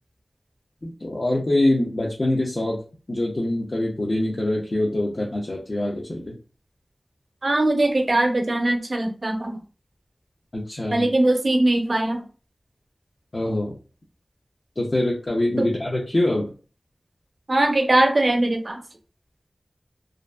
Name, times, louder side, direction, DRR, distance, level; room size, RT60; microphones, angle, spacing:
voice 1, 0.8-2.8 3.1-6.4 10.5-11.1 13.3-13.8 14.8-16.5, left 1 dB, 50° left, -4 dB, 0.5 m, -24 dB
voice 2, 7.4-9.6 10.9-12.2 15.6-15.7 17.5-18.8, right 1 dB, 55° right, 4 dB, 0.5 m, -21 dB
2.5 x 2.3 x 2.2 m, 0.37 s
wide cardioid pair, 65°, 0 cm